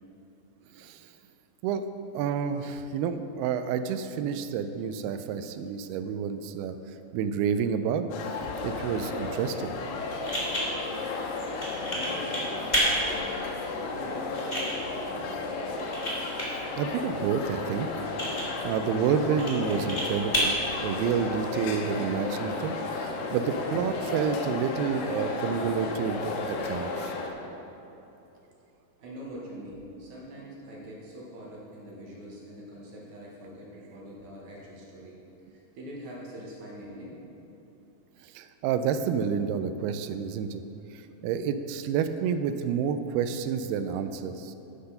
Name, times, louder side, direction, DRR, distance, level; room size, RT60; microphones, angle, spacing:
voice 1, 2.1-6.7 7.1-8.1 8.6-9.7 16.8-17.9 18.6-27.1 38.4-40.6 41.2-44.5, right 7 dB, 85° right, 10 dB, 2.4 m, -29 dB
sound 1, 8.1-27.3, left 3 dB, 85° left, 2.9 m, -33 dB
sound 2, 9.6-21.7, equal, 15° left, 1.4 m, -33 dB
voice 2, 11.9-15.8 29.0-35.2 35.5-37.2, equal, 60° right, -4 dB, 2.3 m, -44 dB
9.7 x 6.7 x 5.6 m, 3.0 s
omnidirectional pair, 4.7 m